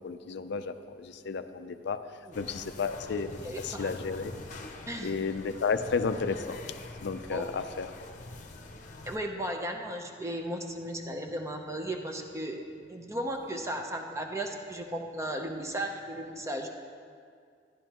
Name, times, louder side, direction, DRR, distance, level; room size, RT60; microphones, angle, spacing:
voice 1, 0.0-2.0 2.3-4.3 5.0-6.6 7.0-7.9, left 5 dB, 65° left, 9 dB, 0.4 m, -32 dB
sound 1, 2.3-9.2, left 2 dB, 45° left, 0.8 m, -44 dB
voice 2, 3.4-3.9 4.9-5.1 7.3-7.5 9.0-12.6 12.9-16.7, right 1 dB, 15° right, 3 dB, 0.8 m, -35 dB
12.5 x 11.0 x 2.9 m, 2.2 s
head